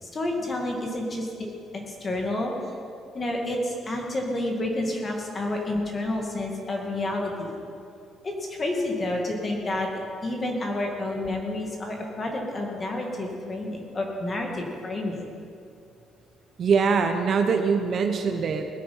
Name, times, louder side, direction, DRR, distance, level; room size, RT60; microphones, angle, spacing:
voice 1, 0.0-2.5 3.1-7.5 8.2-9.9 10.2-15.2, left 1 dB, 25° left, 1 dB, 2.2 m, -29 dB
voice 2, 16.6-18.7, right 5 dB, 40° right, 6 dB, 0.9 m, -23 dB
20.0 x 8.7 x 5.6 m, 2.5 s
cardioid pair, 150°, 0 cm